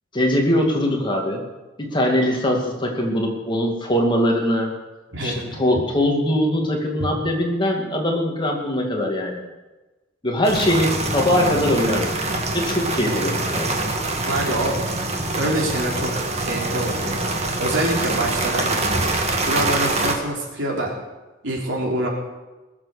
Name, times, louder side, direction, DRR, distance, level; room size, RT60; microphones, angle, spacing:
voice 1, 0.1-1.4 1.8-4.8 5.2-9.4 10.2-12.1 12.5-13.7, left 1 dB, 25° left, 0 dB, 2.3 m, -21 dB
voice 2, 5.1-5.4 7.0-7.1 14.3-14.8 15.3-16.1 16.4-18.8 19.5-21.0 21.4-22.1, right 1 dB, 70° right, -1 dB, 3.4 m, -25 dB
sound 1, 10.4-20.1, right 2 dB, 35° right, 1.7 m, -24 dB
20.5 x 7.5 x 6.6 m, 1.1 s
head